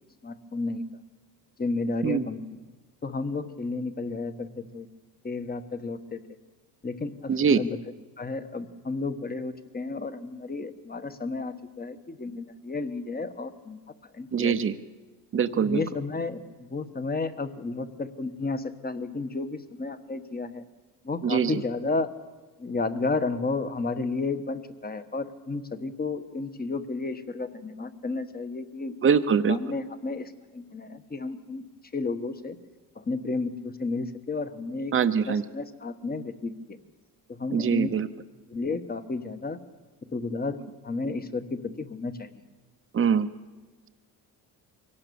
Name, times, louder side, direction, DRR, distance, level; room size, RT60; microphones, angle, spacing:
voice 1, 0.2-1.0 1.6-2.4 3.0-4.9 5.2-6.2 6.8-7.8 8.2-13.8 14.1-14.5 15.5-20.6 21.0-22.1 22.6-28.9 29.3-31.6 31.9-32.6 32.9-34.9 35.3-36.8 37.3-37.9 38.5-39.6 40.1-42.3, left 3 dB, 20° left, 10 dB, 1.3 m, -32 dB
voice 2, 7.3-7.6 14.3-14.7 15.3-15.8 21.2-21.6 29.0-29.6 34.9-35.4 37.5-38.1 42.9-43.3, right 6 dB, 30° right, 8 dB, 0.9 m, -23 dB
23.5 x 17.5 x 7.0 m, 1.3 s
cardioid pair, 115°, 42 cm